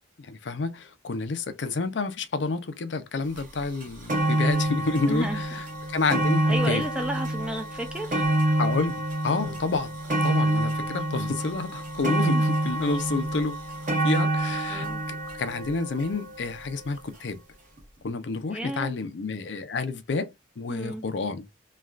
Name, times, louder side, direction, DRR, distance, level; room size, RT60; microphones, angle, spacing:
voice 1, 0.2-6.8 8.6-8.9 9.2-9.9 10.2-13.6 13.9-17.4 18.0-21.4, left 3 dB, 90° left, 0.6 m, -29 dB
sound 1, 3.4-3.5 3.8-17.0 17.8-17.9, right 1 dB, 50° right, 1.2 m, -27 dB
voice 2, 5.1-5.4 6.5-8.3 9.3-9.6 12.3-12.4 14.7-15.0 18.5-18.9 20.7-21.0, right 1 dB, 5° right, 0.4 m, -32 dB
3.2 x 2.4 x 2.4 m
head